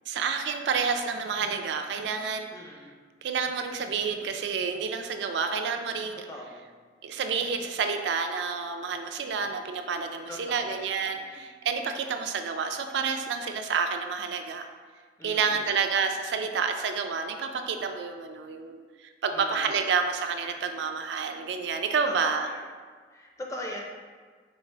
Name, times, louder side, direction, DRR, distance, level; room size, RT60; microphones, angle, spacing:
voice 1, 0.1-2.5 3.2-6.3 7.0-14.7 15.2-22.5, right 5 dB, 70° right, 6 dB, 0.3 m, -29 dB
voice 2, 2.5-2.9 6.3-6.7 10.3-10.8 11.2-11.4 15.2-15.6 19.3-19.7 22.1-22.6 23.1-23.8, left 1 dB, 15° left, -1 dB, 0.5 m, -40 dB
4.5 x 2.4 x 3.2 m, 1.5 s
head